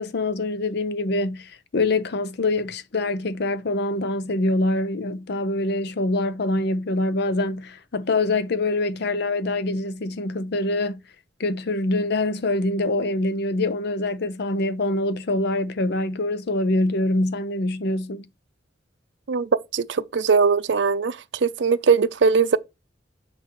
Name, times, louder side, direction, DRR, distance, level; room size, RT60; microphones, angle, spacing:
voice 1, 0.0-11.0 11.4-18.3, left 2 dB, 60° left, 0.6 m, -25 dB
voice 2, 19.3-22.6, right 5 dB, 70° right, 0.5 m, -20 dB
7.5 x 5.9 x 3.1 m
head